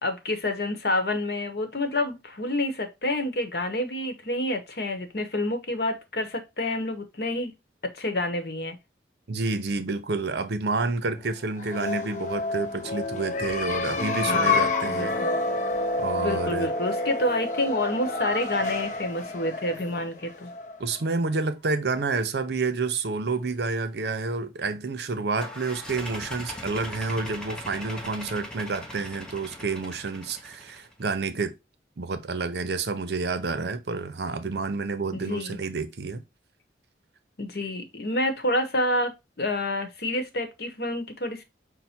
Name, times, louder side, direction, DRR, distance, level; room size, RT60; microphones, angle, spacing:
voice 1, 0.0-7.5 7.8-8.8 14.3-15.4 16.2-20.5 35.3-35.6 37.4-41.4, left 1 dB, 60° left, 0.9 m, -28 dB
voice 2, 9.3-15.2 16.0-16.7 20.8-31.5 32.0-36.2, right 3 dB, 65° right, 0.6 m, -29 dB
sound 1, 11.5-21.0, left 3 dB, 45° left, 0.6 m, -29 dB
sound 2, 25.4-30.9, left 1 dB, 5° left, 0.7 m, -40 dB
5.5 x 2.1 x 4.2 m
head